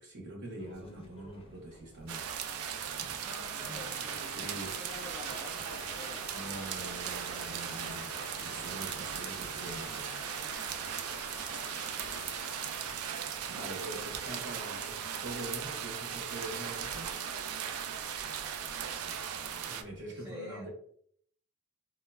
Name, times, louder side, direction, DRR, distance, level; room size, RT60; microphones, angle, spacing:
voice 1, 0.0-2.2 4.2-4.8 6.3-10.1 12.9-13.0 13.5-17.1 19.7-20.7, right 1 dB, 55° right, -3 dB, 0.7 m, -44 dB
sound 1, 0.6-20.0, left 1 dB, 25° left, 0.5 m, -56 dB
sound 2, 2.1-19.8, right 8 dB, 70° right, 0.3 m, -38 dB
voice 2, 3.2-8.4 11.1-12.5 13.5-13.8 20.1-20.7, left 2 dB, 15° right, -5 dB, 0.8 m, -51 dB
sound 3, 3.8-12.7, left 6 dB, 85° left, 0.4 m, -49 dB
3.2 x 2.0 x 2.2 m, 0.63 s
head